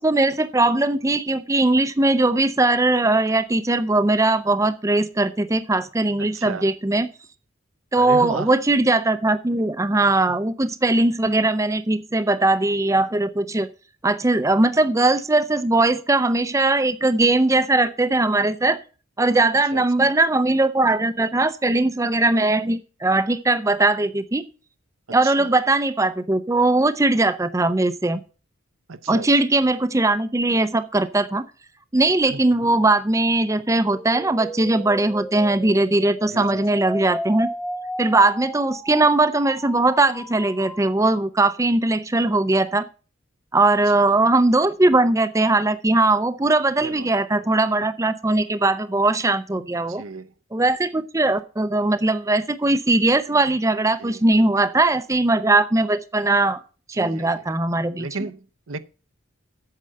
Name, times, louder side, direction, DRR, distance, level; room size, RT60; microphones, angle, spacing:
voice 1, 0.0-7.1 7.9-13.7 14.0-18.8 19.2-24.5 25.1-28.2 29.1-31.4 31.9-37.5 38.0-42.9 43.5-50.0 50.5-56.6 56.9-58.1, right 2 dB, 15° right, 0.5 m, -20 dB
voice 2, 6.2-6.7 8.0-8.5 19.7-20.1 25.2-25.5 28.9-29.3 32.3-32.4 36.3-36.6 46.8-47.1 49.9-50.3 54.0-54.2 56.9-57.3 58.0-58.8, right 4 dB, 80° right, 0.8 m, -34 dB
sound 1, 33.8-40.8, equal, 5° left, 0.9 m, -34 dB
8.5 x 6.7 x 7.6 m
head